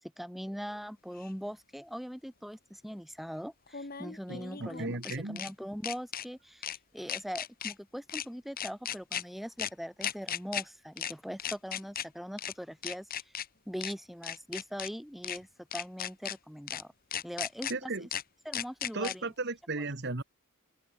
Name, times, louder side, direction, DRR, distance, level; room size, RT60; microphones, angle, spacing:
voice 1, 0.0-13.3 13.7-16.9 17.2-18.1 18.4-19.3, equal, ahead, 6.2 m, -41 dB
sound 1, 1.2-1.3 3.7-5.5 5.8-6.3 6.6-6.8 7.1-7.7 8.1-8.3 8.6-9.2 9.6-9.7 10.0-10.6 11.0-11.1 11.4-12.1 12.4-12.5 12.8-13.5 13.8-13.9 14.2-14.9 15.2-15.4 15.7-16.4 16.7-16.8 17.1-17.7 18.1-18.2 18.5-19.2, left 9 dB, 40° left, 1.4 m, -36 dB
voice 2, 4.3-5.4 17.7-18.1 18.9-20.2, right 3 dB, 50° right, 1.6 m, -35 dB
open air
head